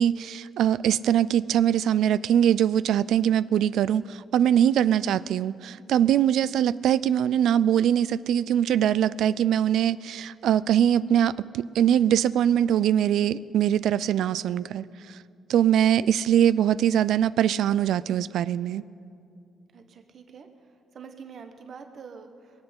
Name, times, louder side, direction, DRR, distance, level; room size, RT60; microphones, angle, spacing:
voice 1, 0.0-15.2 15.5-18.8, right 10 dB, 75° right, 18 dB, 0.3 m, -22 dB
voice 2, 19.7-20.5 20.9-22.6, right 6 dB, 55° right, 6 dB, 1.1 m, -45 dB
21.5 x 8.0 x 7.9 m, 2.5 s
cardioid pair, 90°, 0 cm